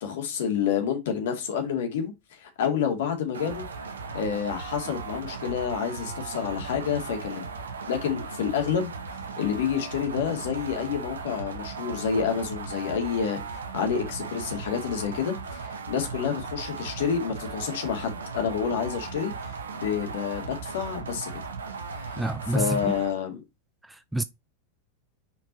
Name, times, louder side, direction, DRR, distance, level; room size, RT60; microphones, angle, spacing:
voice 1, 0.0-3.7 4.1-7.5 7.9-8.9 9.4-21.3 21.9-22.1 22.5-23.4, left 7 dB, 55° left, 2.2 m, -29 dB
sound 1, 3.3-23.1, right 4 dB, 70° right, 1.1 m, -37 dB
voice 2, 22.2-22.9 23.8-24.2, right 1 dB, 5° right, 0.4 m, -28 dB
5.7 x 4.5 x 4.0 m
figure-of-eight pair, 90°, 0 cm